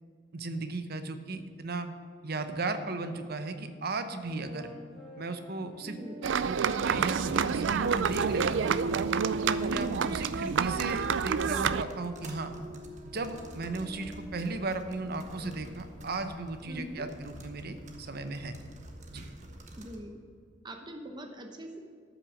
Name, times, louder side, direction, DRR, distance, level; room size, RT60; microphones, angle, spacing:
voice 1, 0.3-1.9 2.2-4.7 5.2-6.0 6.5-8.8 9.4-12.6 13.0-18.5 19.1-19.2, right 3 dB, 55° right, 9 dB, 0.9 m, -36 dB
sound 1, 4.2-9.8 10.5-16.0, left 1 dB, ahead, 2.3 m, -49 dB
voice 2, 5.9-6.3 9.7-10.1 16.7-17.0 19.8-20.1 20.6-21.8, equal, 25° right, 3 dB, 0.9 m, -42 dB
sound 2, 6.2-11.8, right 6 dB, 70° right, 0.4 m, -28 dB
sound 3, 7.2-20.0, right 1 dB, 40° right, 1.3 m, -48 dB
13.5 x 6.1 x 6.4 m, 2.1 s
head